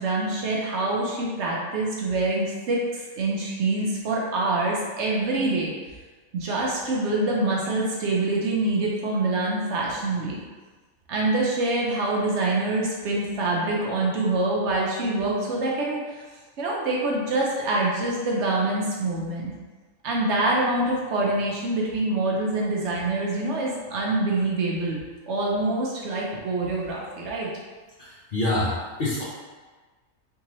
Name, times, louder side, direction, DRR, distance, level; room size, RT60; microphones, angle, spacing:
voice 1, 0.0-5.7 6.3-10.4 11.1-16.2 16.6-19.5 20.0-25.0 25.3-27.5, right 2 dB, 65° right, -3 dB, 0.9 m, -25 dB
voice 2, 28.0-29.2, left 1 dB, 50° left, -8 dB, 0.6 m, -26 dB
3.6 x 2.8 x 2.9 m, 1.4 s
omnidirectional pair, 1.4 m